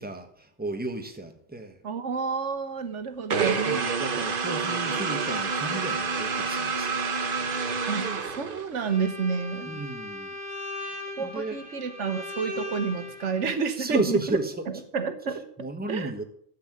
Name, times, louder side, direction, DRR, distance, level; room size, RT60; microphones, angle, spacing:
voice 1, 0.0-1.8 3.7-7.0 7.4-7.5 9.6-10.3 10.8-11.6 13.8-14.7 15.6-16.2, right 2 dB, 10° right, 5 dB, 1.2 m, -33 dB
voice 2, 1.8-3.6 7.9-9.7 11.2-14.2 14.7-15.4 15.9-16.1, right 5 dB, 90° right, 10 dB, 1.5 m, -30 dB
sound 1, 3.3-8.9, right 5 dB, 50° right, 1.1 m, -28 dB
Bowed string instrument, 8.8-13.5, left 2 dB, 40° left, 3.4 m, -38 dB
11.5 x 7.7 x 7.5 m, 0.64 s
omnidirectional pair, 1.2 m